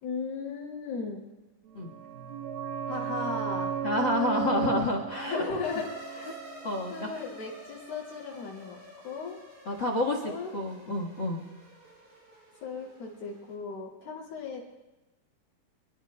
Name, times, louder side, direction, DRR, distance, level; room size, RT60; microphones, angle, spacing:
voice 1, 0.0-1.3 2.9-3.8 5.2-6.3 6.9-8.8 9.0-9.4 10.2-10.5 12.6-14.6, left 5 dB, 80° left, -3 dB, 4.5 m, -36 dB
sound 1, 1.7-7.2 7.4-7.5, right 10 dB, 85° right, 2.7 m, -35 dB
voice 2, 3.8-5.4 6.6-7.1 9.7-11.4, left 2 dB, 50° left, 2 dB, 1.4 m, -29 dB
sound 2, 5.6-13.5, equal, 55° right, 6.5 m, -49 dB
27.5 x 22.0 x 2.2 m, 1.0 s
omnidirectional pair, 4.2 m